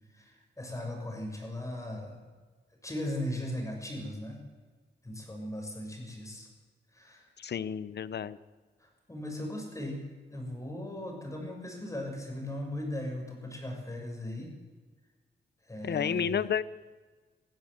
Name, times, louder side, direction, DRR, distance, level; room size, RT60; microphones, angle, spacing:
voice 1, 0.1-2.2 2.8-4.4 5.0-6.5 6.9-7.3 8.8-14.5 15.7-16.4, left 1 dB, 15° left, 1 dB, 6.7 m, -38 dB
voice 2, 7.4-8.4 15.8-16.6, left 8 dB, 65° left, 17 dB, 0.9 m, -31 dB
21.0 x 15.5 x 8.2 m, 1.4 s
wide cardioid pair, 120°, 19 cm